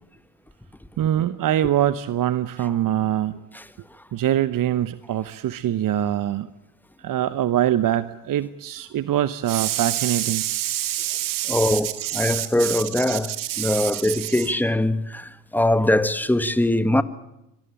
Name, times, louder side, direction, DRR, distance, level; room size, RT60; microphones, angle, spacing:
voice 1, 1.0-3.4 4.1-6.5 7.0-14.5, right 12 dB, 45° right, 1.0 m, -24 dB
voice 2, 11.5-17.0, left 1 dB, 5° left, 1.5 m, -22 dB
25.5 x 19.0 x 8.9 m
hypercardioid pair, 60°, 47 cm